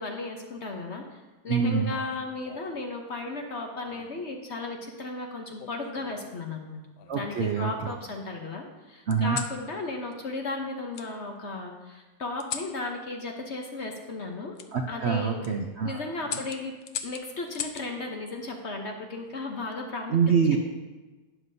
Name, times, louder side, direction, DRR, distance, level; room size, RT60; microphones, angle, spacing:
voice 1, 0.0-6.8 7.1-14.6 14.9-15.5 15.8-16.7 17.0-20.2 20.5-20.6, left 2 dB, 50° left, 2 dB, 1.0 m, -35 dB
voice 2, 1.5-1.9 7.1-7.7 9.1-9.4 14.7-16.0 20.1-20.6, right 6 dB, 65° right, 3 dB, 0.6 m, -25 dB
sound 1, 1.7-2.9 3.9-4.3 5.6-6.3 7.0-7.9 9.1-9.6 10.9-11.1 12.4-12.8 14.6-14.7 15.2-15.5 16.3-17.9 19.4-19.8, left 8 dB, 80° left, 1.2 m, -39 dB
12.0 x 9.3 x 2.7 m, 1.2 s
omnidirectional pair, 1.9 m